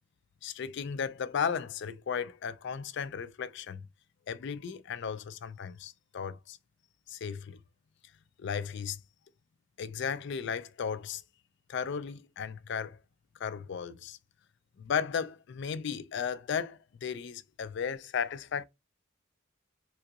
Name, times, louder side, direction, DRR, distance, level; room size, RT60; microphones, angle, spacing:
voice 1, 0.4-3.9 4.3-6.6 7.1-7.6 8.4-9.0 9.8-11.2 11.7-13.0 13.4-14.2 14.8-18.6, left 7 dB, 60° left, 0.4 m, -35 dB
3.7 x 2.8 x 2.3 m
head